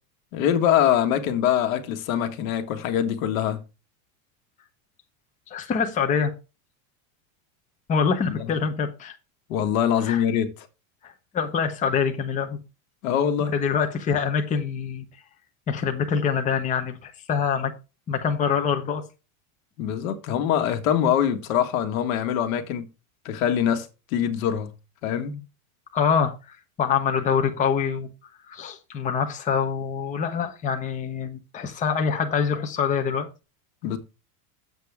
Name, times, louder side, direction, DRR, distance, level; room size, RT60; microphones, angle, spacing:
voice 1, 0.3-3.6 8.3-8.5 9.5-10.5 13.0-13.5 19.8-22.8 23.2-24.7 25.0-25.4 33.8-34.0, left 9 dB, 70° left, 1.6 m, -23 dB
voice 2, 5.5-6.3 7.9-9.2 10.0-10.2 11.0-12.6 13.5-15.1 15.7-17.7 18.1-19.0 25.9-28.1 28.5-33.3, left 6 dB, 20° left, 0.8 m, -25 dB
9.1 x 7.7 x 3.5 m
supercardioid pair, 155°, 43 cm